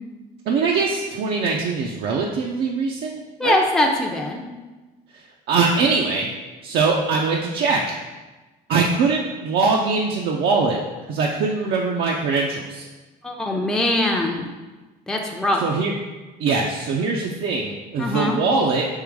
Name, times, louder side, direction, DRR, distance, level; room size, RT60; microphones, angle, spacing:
voice 1, 0.5-3.6 5.1-6.3 6.6-8.0 8.7-10.8 11.1-12.9 15.6-15.9 16.4-18.9, right 4 dB, 75° right, 0 dB, 0.5 m, -22 dB
voice 2, 3.4-4.4 13.2-14.5 15.1-15.6 18.0-18.4, left 1 dB, 5° left, 0 dB, 0.5 m, -22 dB
3.7 x 3.1 x 4.6 m, 1.2 s
cardioid pair, 110°, 17 cm